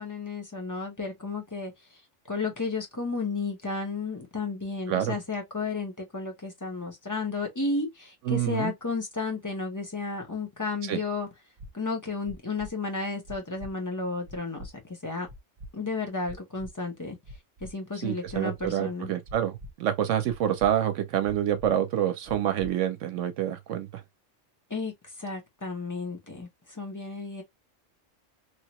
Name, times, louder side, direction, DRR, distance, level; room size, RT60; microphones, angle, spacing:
voice 1, 0.0-1.7 2.3-11.3 11.7-15.3 15.7-17.2 17.6-19.1 24.7-27.4, left 3 dB, 15° left, 0.8 m, -33 dB
voice 2, 8.3-8.7 10.8-11.0 18.0-24.0, right 10 dB, 75° right, 0.9 m, -27 dB
sound 1, 11.6-11.7 12.2-12.7 13.2-13.7 14.2-14.7 15.2-15.7 16.2-16.7 17.2-17.7 18.2-18.7 19.2-19.7 20.2-20.7 21.2-21.7 22.2-22.7, equal, 30° right, 0.8 m, -43 dB
3.1 x 2.8 x 2.9 m
omnidirectional pair, 1.3 m